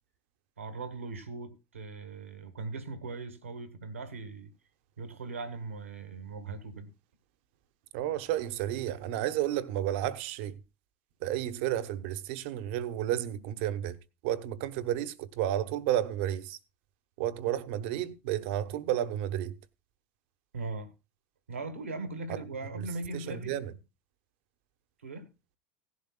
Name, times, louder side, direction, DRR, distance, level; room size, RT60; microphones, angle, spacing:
voice 1, 0.6-4.5 5.0-6.9 20.5-20.9 21.5-23.5 25.0-25.3, right 3 dB, 85° right, 1.7 m, -39 dB
voice 2, 7.9-10.6 11.2-14.0 14.2-16.6 17.2-19.5 22.3-22.4 22.7-22.9 23.1-23.7, right 12 dB, 60° right, 1.1 m, -32 dB
17.5 x 11.5 x 2.3 m
figure-of-eight pair, 75°, 7 cm